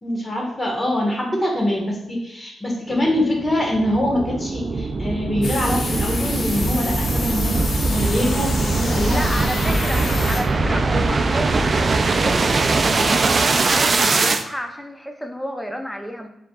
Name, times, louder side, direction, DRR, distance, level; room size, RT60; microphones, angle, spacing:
voice 1, 0.0-7.6 7.8-9.2 10.0-10.1, left 1 dB, 25° left, -1 dB, 1.3 m, -24 dB
sound 1, 2.9-14.4, right 3 dB, 45° right, 0.3 m, -21 dB
sound 2, 5.4-10.4, left 2 dB, 60° left, 0.9 m, -29 dB
voice 2, 8.8-16.3, equal, 5° left, 4 dB, 0.6 m, -31 dB
4.4 x 3.7 x 2.3 m, 0.88 s
cardioid pair, 80°, 0 cm